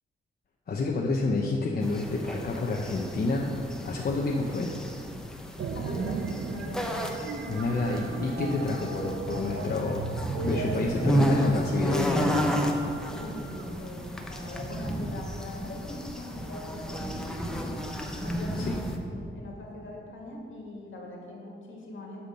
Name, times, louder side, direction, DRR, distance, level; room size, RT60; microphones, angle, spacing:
voice 1, 0.7-3.5 3.8-4.7 7.5-10.1 10.4-12.5 18.7-18.8, left 3 dB, 50° left, -2 dB, 0.8 m, -29 dB
sound 1, 1.8-19.0, equal, 5° left, 0.8 m, -32 dB
voice 2, 5.6-6.9 13.0-17.7 18.2-22.2, left 1 dB, 70° left, -1 dB, 2.0 m, -42 dB
sound 2, 5.6-13.7, right 4 dB, 70° right, 0.6 m, -36 dB
8.3 x 5.9 x 6.6 m, 2.4 s
wide cardioid pair, 135°, 21 cm